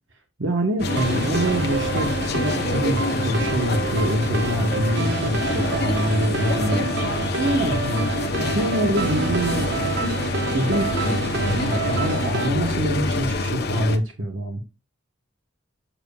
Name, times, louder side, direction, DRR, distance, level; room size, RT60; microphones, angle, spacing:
voice 1, 0.4-9.7 10.5-14.6, equal, 75° right, 1.1 m, -25 dB
sound 1, 0.8-14.0, left 2 dB, 55° left, 0.9 m, -26 dB
sound 2, 0.9-12.5, right 4 dB, 55° right, 0.6 m, -29 dB
7.5 x 6.6 x 2.3 m
head